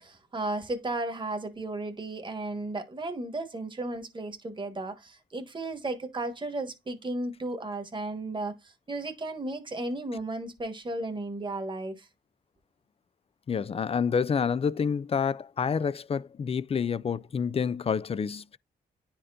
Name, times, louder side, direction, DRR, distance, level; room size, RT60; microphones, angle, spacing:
voice 1, 0.0-12.1, right 2 dB, 25° right, 1.4 m, -34 dB
voice 2, 13.5-18.6, left 6 dB, 35° left, 0.3 m, -28 dB
9.8 x 4.3 x 2.5 m
cardioid pair, 70°, 18 cm